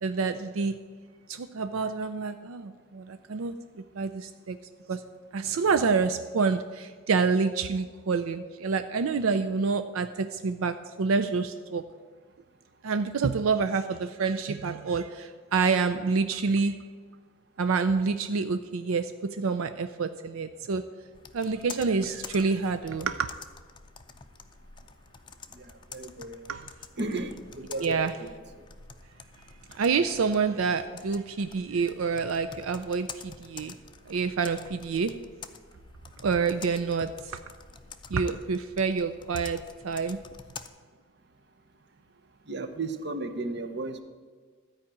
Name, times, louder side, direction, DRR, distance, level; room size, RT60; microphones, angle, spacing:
voice 1, 0.0-0.8 1.3-4.6 4.9-5.0 5.3-11.8 12.8-16.8 17.6-20.8 21.3-23.3 26.5-26.6 27.8-28.1 29.8-33.7 34.1-35.2 36.2-37.4 38.1-40.2, right 5 dB, 85° right, 9 dB, 0.5 m, -27 dB
Computer keyboard, 21.1-40.7, left 6 dB, 20° left, 0.5 m, -48 dB
voice 2, 25.9-26.4 27.0-28.4 42.5-44.0, right 2 dB, 55° right, 8 dB, 0.8 m, -34 dB
13.0 x 4.9 x 8.6 m, 1.5 s
head